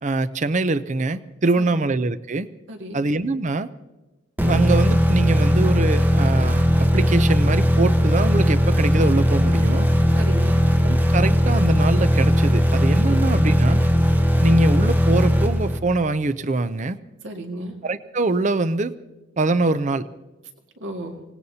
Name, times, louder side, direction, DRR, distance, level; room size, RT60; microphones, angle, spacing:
voice 1, 0.0-2.5 2.9-3.7 4.4-6.6 6.9-9.9 10.8-13.8 14.4-17.0 17.8-18.9 19.4-20.0, right 3 dB, 40° right, 13 dB, 0.5 m, -23 dB
voice 2, 2.7-3.0 10.1-10.7 13.1-13.2 17.2-17.8 20.8-21.2, right 1 dB, 75° right, 2 dB, 2.0 m, -34 dB
sound 1, 4.4-16.1, equal, 10° right, 0.8 m, -18 dB
25.5 x 18.5 x 2.8 m, 1.1 s
head